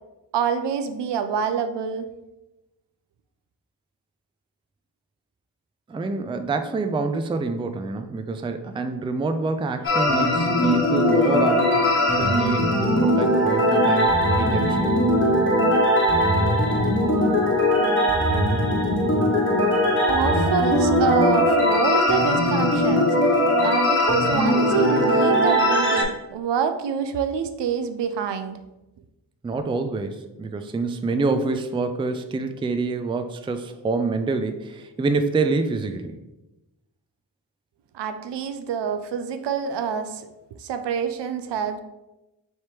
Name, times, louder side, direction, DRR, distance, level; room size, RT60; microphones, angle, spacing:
voice 1, 0.3-2.1 20.1-23.2 23.6-28.6 37.9-40.2 40.6-41.8, right 7 dB, 70° right, 9 dB, 0.5 m, -26 dB
voice 2, 5.9-14.1 14.4-14.9 29.4-36.2, right 3 dB, 15° right, 7 dB, 0.3 m, -26 dB
sound 1, 9.8-26.0, left 1 dB, 25° left, 1.2 m, -20 dB
3.3 x 3.0 x 4.3 m, 1.0 s
supercardioid pair, 40°, 44 cm